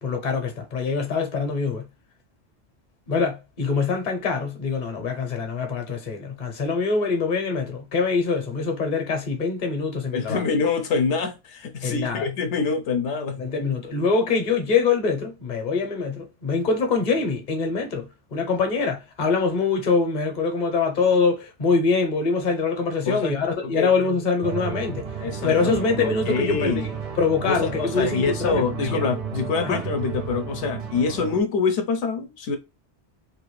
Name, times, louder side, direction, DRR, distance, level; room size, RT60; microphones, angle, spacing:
voice 1, 0.0-1.8 3.1-10.4 11.8-12.2 13.4-25.0 25.4-29.0 29.6-29.8, left 4 dB, 40° left, 0.8 m, -24 dB
voice 2, 10.1-13.4 23.1-23.4 23.6-23.9 25.2-26.8 27.5-32.6, left 5 dB, 80° left, 0.9 m, -25 dB
sound 1, 24.4-31.4, right 6 dB, 50° right, 0.4 m, -32 dB
2.9 x 2.5 x 3.1 m
omnidirectional pair, 1.2 m